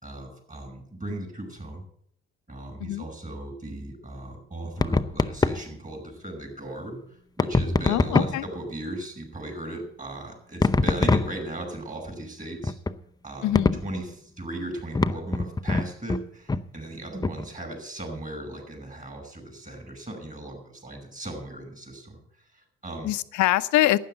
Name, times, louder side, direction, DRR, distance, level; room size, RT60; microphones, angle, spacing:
voice 1, 0.0-1.8 2.5-7.0 7.4-12.7 13.2-22.2 22.5-23.1, right 1 dB, 25° right, 3 dB, 5.6 m, -37 dB
sound 1, 4.8-5.7 7.4-8.5 10.6-11.7 12.6-13.0 13.5-13.9 14.9-16.2 16.5-16.7 17.2-17.4, left 3 dB, 10° left, 0.6 m, -24 dB
voice 2, 7.9-8.4 13.4-13.8 23.0-24.0, left 15 dB, 60° left, 14 dB, 0.8 m, -24 dB
12.0 x 9.3 x 7.7 m, 0.67 s
hypercardioid pair, 55°, 33 cm